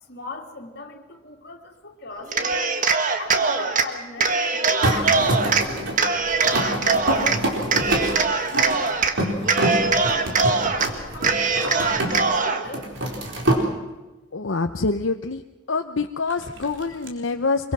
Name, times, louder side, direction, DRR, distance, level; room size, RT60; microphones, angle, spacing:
voice 1, 0.1-2.7 3.2-8.6 9.2-12.9, left 3 dB, 55° left, 3 dB, 2.8 m, -40 dB
Cheering, 2.2-3.9 4.2-5.6 6.0-7.4 7.7-9.1 9.4-10.9 11.2-12.6, right 4 dB, 40° right, 1.6 m, -22 dB
sound 1, 4.8-12.4 12.6-13.6 16.3-17.1, right 1 dB, 65° right, 4.4 m, -26 dB
voice 2, 14.3-15.4 15.7-17.7, left 3 dB, 80° left, 6 dB, 0.9 m, -25 dB
25.0 x 23.5 x 6.2 m, 1.1 s
head